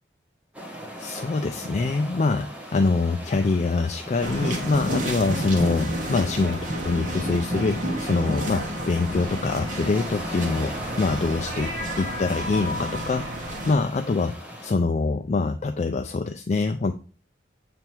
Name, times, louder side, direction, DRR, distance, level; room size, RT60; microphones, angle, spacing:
sound 1, 0.5-14.7, right 1 dB, 10° right, 1.2 m, -40 dB
voice 1, 1.0-13.3 13.7-16.9, left 3 dB, 40° left, 5 dB, 0.3 m, -25 dB
sound 2, 4.2-13.7, equal, 45° right, 1.3 m, -30 dB
7.0 x 3.4 x 4.5 m, 0.38 s
head